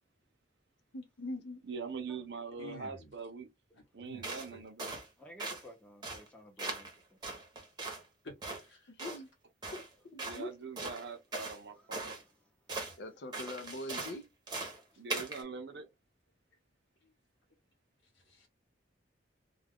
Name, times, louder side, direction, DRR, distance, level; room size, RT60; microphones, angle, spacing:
voice 1, 0.9-1.6 8.9-9.3 9.7-9.8 10.1-10.5 13.0-14.2, left 1 dB, 60° left, 0.5 m, -42 dB
voice 2, 1.6-3.5 3.9-5.0 10.2-12.2 15.0-15.9, right 5 dB, 60° right, 0.6 m, -43 dB
voice 3, 2.6-3.1 4.0-4.6 8.2-8.9 18.3-18.5, left 2 dB, 80° left, 0.9 m, -50 dB
sound 1, 4.2-4.5 4.8-5.1 5.4-5.7 6.0-6.3 6.6-6.9 7.2-8.0 8.4-8.6 9.0-9.2 9.6-9.9 10.2-10.4 10.8-11.6 11.9-12.2 12.7-12.9 13.3-14.2 14.5-14.8 15.1-15.4, right 3 dB, 25° right, 0.8 m, -40 dB
voice 4, 5.2-7.4 11.7-13.0 14.8-15.1, equal, 5° left, 0.7 m, -57 dB
2.3 x 2.2 x 3.4 m
head